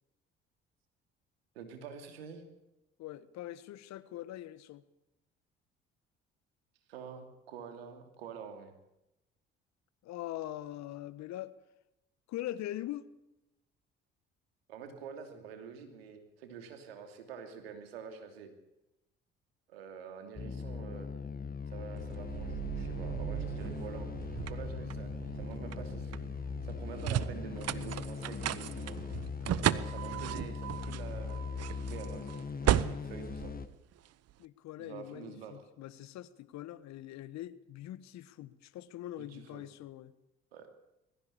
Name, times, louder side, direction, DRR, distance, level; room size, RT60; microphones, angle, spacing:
voice 1, 1.5-2.4 6.9-8.7 14.7-18.5 19.7-21.1 21.7-24.1 24.5-25.1 25.3-26.2 26.6-29.0 29.6-32.2 32.8-33.5 34.8-35.5 39.2-39.6 40.5-40.7, right 6 dB, 90° right, 6 dB, 2.9 m, -47 dB
voice 2, 3.0-4.8 10.0-11.5 12.3-13.0 34.4-40.1, left 13 dB, 65° left, 16 dB, 1.4 m, -42 dB
sound 1, 20.4-33.7, left 5 dB, 30° left, 1.5 m, -40 dB
sound 2, 22.0-34.3, right 12 dB, 55° right, 1.0 m, -36 dB
22.0 x 15.5 x 8.5 m, 0.92 s
hypercardioid pair, 55°, 30 cm